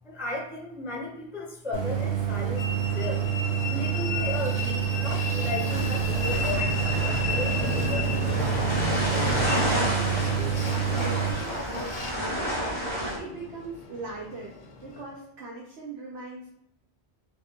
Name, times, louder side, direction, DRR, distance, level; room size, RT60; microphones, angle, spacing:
voice 1, 0.0-3.3 3.6-9.2, left 2 dB, 5° right, -2 dB, 0.5 m, -36 dB
Idling, 1.7-11.3, right 10 dB, 60° right, 0.7 m, -28 dB
Train, 2.6-15.0, left 4 dB, 55° left, 0.5 m, -33 dB
sound 1, 5.7-13.2, equal, 30° right, 1.1 m, -31 dB
voice 2, 9.3-12.7 13.1-14.5 14.8-16.5, right 3 dB, 80° right, -4 dB, 1.1 m, -40 dB
3.5 x 2.4 x 2.8 m, 0.76 s
omnidirectional pair, 1.1 m